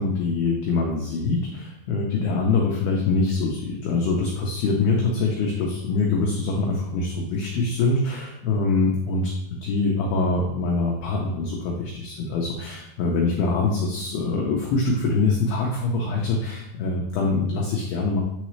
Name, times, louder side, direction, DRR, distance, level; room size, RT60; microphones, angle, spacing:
voice 1, 0.0-18.2, left 3 dB, 85° left, -2 dB, 2.2 m, -24 dB
9.6 x 4.0 x 3.1 m, 0.81 s
omnidirectional pair, 5.6 m